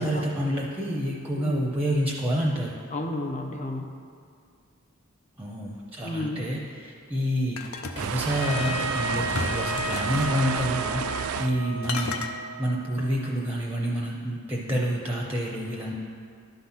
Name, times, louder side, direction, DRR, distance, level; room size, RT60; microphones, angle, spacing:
voice 1, 0.0-2.8 5.4-7.6 8.0-11.0 11.4-12.2 12.6-15.9, equal, 10° right, -2 dB, 0.6 m, -28 dB
voice 2, 1.3-1.7 2.9-3.9 6.0-6.4, left 1 dB, 35° left, 4 dB, 0.7 m, -32 dB
sound 1, 7.6-8.8 9.3-10.3 11.2-11.6 11.8-12.3, left 4 dB, 70° left, 0.6 m, -34 dB
sound 2, 8.0-11.5, right 8 dB, 75° right, 0.3 m, -31 dB
Trumpet, 8.3-13.1, left 1 dB, 90° left, 1.9 m, -34 dB
12.0 x 4.0 x 5.7 m, 2.3 s
head